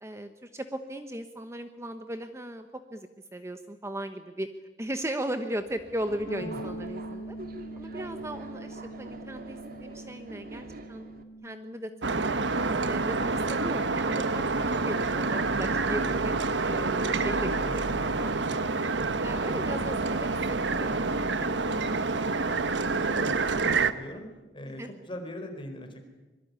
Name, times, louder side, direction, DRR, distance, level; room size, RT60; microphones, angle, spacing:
voice 1, 0.0-4.5 4.8-7.4 7.8-11.0 11.4-12.4 12.8-16.3 16.6-18.3 19.2-21.5 24.8-24.9, right 1 dB, 15° right, 8 dB, 1.1 m, -37 dB
Subway metro underground, 5.6-11.2, right 2 dB, 55° right, 2.2 m, -45 dB
sound 1, 6.3-16.0, right 1 dB, 90° left, 2.5 m, -44 dB
voice 2, 6.4-6.8 17.9-18.2 23.2-24.3 24.5-26.0, left 1 dB, 30° left, 5 dB, 4.6 m, -41 dB
sound 2, 12.0-23.9, right 3 dB, 80° right, 1.3 m, -27 dB
25.0 x 23.0 x 9.7 m, 1.2 s
head